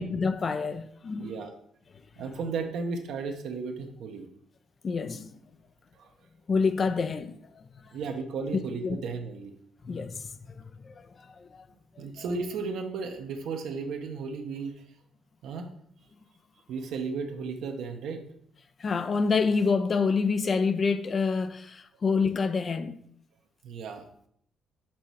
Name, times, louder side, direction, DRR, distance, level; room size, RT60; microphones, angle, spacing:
voice 1, 0.0-1.3 4.8-5.3 6.5-7.6 8.5-9.0 9.8-10.3 10.8-11.6 12.0-12.2 18.8-23.0, left 4 dB, 40° left, 0.6 m, -28 dB
voice 2, 1.2-1.5 2.2-4.3 6.0-6.1 7.9-9.5 12.0-14.7 15.4-15.7 16.7-18.2 23.6-24.0, right 4 dB, 75° right, 1.1 m, -34 dB
6.1 x 5.5 x 4.7 m
cardioid pair, 90°, 0 cm